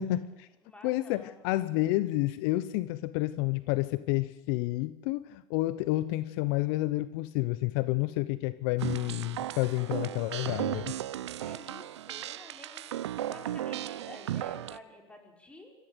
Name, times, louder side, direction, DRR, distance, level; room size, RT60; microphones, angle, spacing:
voice 1, 0.0-0.5 0.8-11.0, left 17 dB, 65° left, 15 dB, 0.9 m, -30 dB
voice 2, 0.6-1.4 11.4-15.7, left 1 dB, 10° left, 2 dB, 5.4 m, -51 dB
sound 1, 8.8-14.8, right 12 dB, 90° right, 0.7 m, -36 dB
26.5 x 14.5 x 8.0 m, 0.99 s
supercardioid pair, 110°, 14 cm